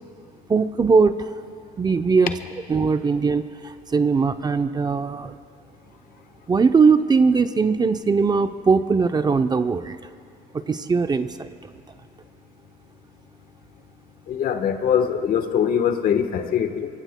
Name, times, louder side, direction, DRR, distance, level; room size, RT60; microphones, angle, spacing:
voice 1, 0.5-1.4 1.8-2.3 2.7-5.4 6.5-10.0 10.5-11.7, right 5 dB, 25° right, 9 dB, 0.6 m, -20 dB
voice 2, 14.3-17.0, left 8 dB, 60° left, 8 dB, 1.2 m, -22 dB
26.0 x 23.5 x 2.2 m, 2.5 s
cardioid pair, 110°, 17 cm